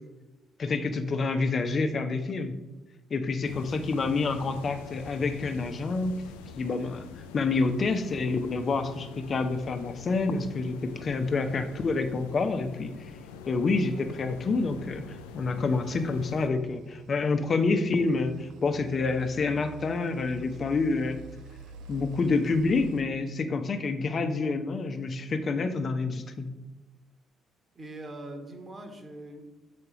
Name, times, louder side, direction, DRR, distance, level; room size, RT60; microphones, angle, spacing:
voice 1, 0.6-2.5 3.1-6.1 6.6-7.0 7.3-13.1 13.5-21.2 21.9-26.5, left 3 dB, 45° left, 8 dB, 0.8 m, -28 dB
sound 1, 3.4-16.5, left 6 dB, 80° left, 0.4 m, -45 dB
sound 2, 16.0-23.0, right 4 dB, 70° right, 0.4 m, -48 dB
voice 2, 27.7-29.4, right 1 dB, 40° right, 5 dB, 1.5 m, -42 dB
6.8 x 4.3 x 5.0 m, 1.0 s
hypercardioid pair, 45°, 0 cm